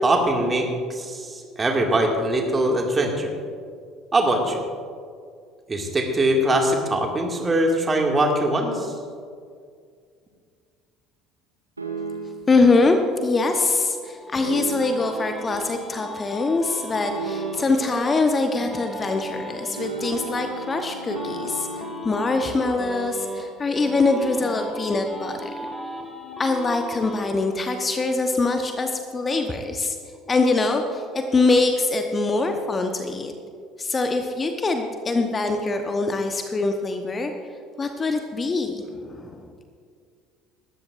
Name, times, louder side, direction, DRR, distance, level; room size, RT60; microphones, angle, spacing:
voice 1, 0.0-3.3 4.1-4.6 5.7-8.9, right 1 dB, 25° right, 2 dB, 2.1 m, -22 dB
sound 1, 11.8-12.6 14.4-15.2 17.1-17.9 19.8-22.4, right 4 dB, 85° right, 0.9 m, -34 dB
voice 2, 12.5-21.7 22.0-25.5 26.4-30.0 30.3-33.3 33.8-37.3 37.8-39.4, left 3 dB, 25° left, 5 dB, 1.0 m, -23 dB
sound 2, 13.9-18.2 18.6-23.4 23.7-27.2, equal, 5° left, 2.1 m, -36 dB
19.0 x 13.5 x 2.6 m, 2.1 s
figure-of-eight pair, 60°, 0 cm